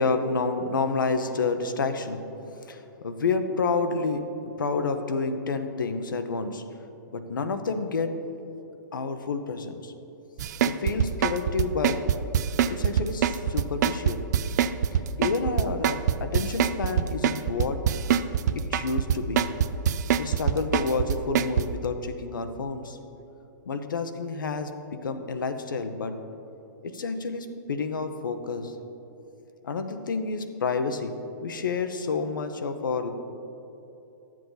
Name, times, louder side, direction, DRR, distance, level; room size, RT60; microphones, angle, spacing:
voice 1, 0.0-2.2 2.6-6.6 7.1-8.1 8.9-9.9 10.6-12.0 12.7-14.2 14.9-17.8 18.5-19.5 20.2-23.0 23.7-24.7 25.0-26.1 26.8-28.8 29.6-31.1 31.4-33.1, left 4 dB, 85° left, 8 dB, 0.8 m, -29 dB
sound 1, 10.4-21.6, right 9 dB, 60° right, 0.4 m, -23 dB
11.0 x 7.5 x 3.9 m, 2.9 s
hypercardioid pair, 130°, 10 cm